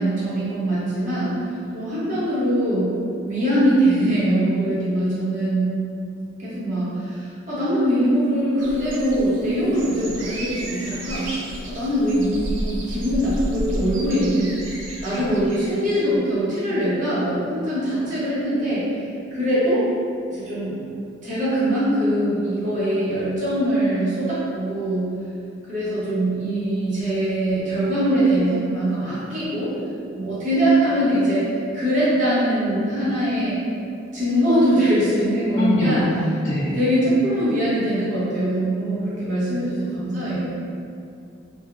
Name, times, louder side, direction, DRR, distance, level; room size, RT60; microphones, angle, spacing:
voice 1, 0.0-2.9 3.2-5.8 6.4-11.3 11.6-14.5 15.0-18.8 19.3-19.9 20.3-20.8 21.2-25.1 25.7-29.7 30.1-31.5 31.7-33.6 34.1-36.0 36.6-40.6, right 1 dB, 40° right, -10 dB, 0.8 m, -22 dB
sound 1, 8.6-15.8, right 1 dB, 80° right, 0.4 m, -32 dB
voice 2, 35.5-36.1 36.4-36.8, left 1 dB, 75° left, -11 dB, 0.5 m, -22 dB
3.2 x 2.0 x 2.4 m, 2.5 s
head